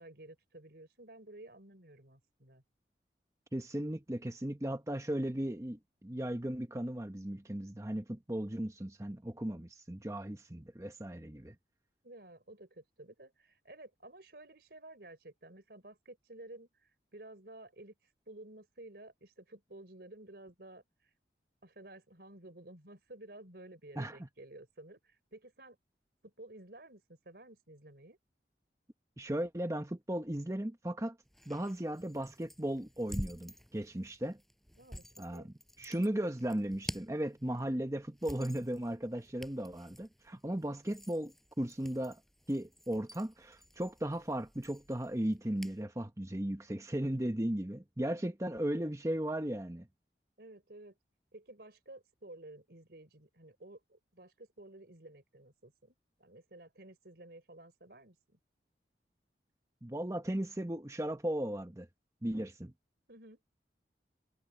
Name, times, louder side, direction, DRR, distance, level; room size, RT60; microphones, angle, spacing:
voice 1, 0.0-2.6 12.0-21.1 21.6-25.8 26.2-28.2 34.8-35.5 50.4-51.0 51.3-58.4 63.1-63.4, right 2 dB, 65° right, 4.1 m, -53 dB
voice 2, 3.5-11.5 24.0-24.2 29.2-31.2 31.5-34.4 35.2-35.4 35.8-42.2 42.5-49.9 59.8-61.9 62.2-62.7, right 1 dB, 15° right, 1.0 m, -36 dB
sound 1, 31.3-45.8, equal, ahead, 7.7 m, -49 dB
head